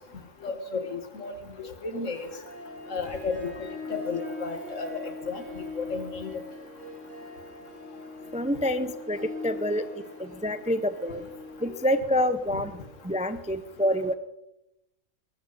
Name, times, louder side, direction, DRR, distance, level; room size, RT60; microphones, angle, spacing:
voice 1, 0.4-1.3 1.6-2.3 2.9-3.5 3.9-6.3 9.7-9.8, left 4 dB, 75° left, 7 dB, 2.1 m, -33 dB
Harp, 2.0-13.2, left 2 dB, 70° right, 8.0 m, -42 dB
voice 2, 8.3-9.9 10.2-11.2 11.6-12.7 13.0-14.1, equal, 10° right, 12 dB, 0.3 m, -27 dB
21.5 x 13.0 x 4.1 m, 0.85 s
omnidirectional pair, 1.3 m